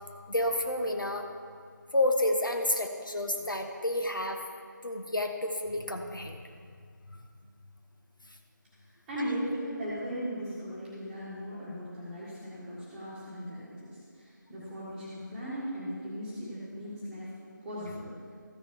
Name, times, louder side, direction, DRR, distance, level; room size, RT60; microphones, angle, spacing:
voice 1, 0.3-1.3 1.9-4.4 4.8-6.4, left 1 dB, 80° left, 4 dB, 1.2 m, -30 dB
voice 2, 9.1-17.3 17.6-18.1, equal, 5° right, -11 dB, 1.6 m, -37 dB
14.0 x 6.5 x 4.7 m, 2.1 s
figure-of-eight pair, 165°, 11 cm